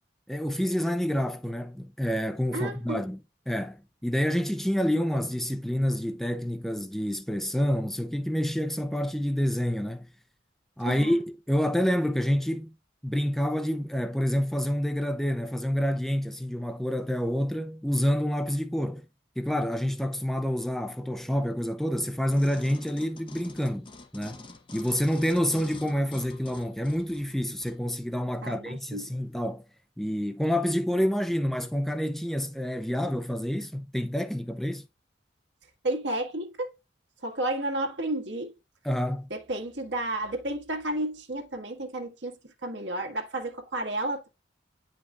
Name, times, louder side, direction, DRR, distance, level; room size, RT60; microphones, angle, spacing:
voice 1, 0.3-3.2 3.5-10.1 10.8-12.7 13.0-19.1 19.4-24.4 24.7-29.6 30.0-34.9 38.8-39.3, equal, ahead, 0.4 m, -28 dB
voice 2, 2.5-3.0 10.8-11.2 28.4-29.1 35.8-36.7 37.2-38.5 39.3-42.3 42.6-44.3, right 1 dB, 70° right, 1.7 m, -32 dB
sound 1, 22.3-27.8 28.4-28.5, left 2 dB, 25° left, 0.8 m, -47 dB
9.4 x 5.2 x 2.4 m
head